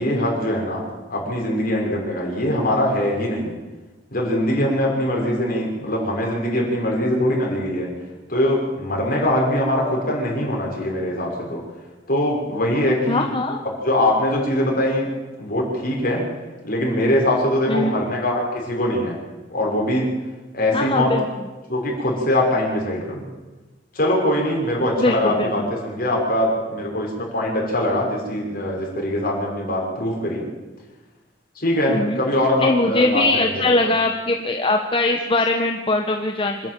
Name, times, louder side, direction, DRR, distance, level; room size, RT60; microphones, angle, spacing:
voice 1, 0.0-3.5 4.1-7.9 8.3-11.6 12.1-13.3 13.6-15.1 15.4-16.3 16.6-19.2 19.5-20.1 20.5-21.2 21.7-23.2 23.9-30.5 31.5-33.7, left 1 dB, 55° left, -1 dB, 6.2 m, -22 dB
voice 2, 13.1-13.6 17.7-17.9 20.7-21.2 25.0-25.7 31.9-32.2 32.6-36.6, left 2 dB, 30° left, 3 dB, 1.3 m, -21 dB
26.0 x 11.0 x 9.2 m, 1.2 s
head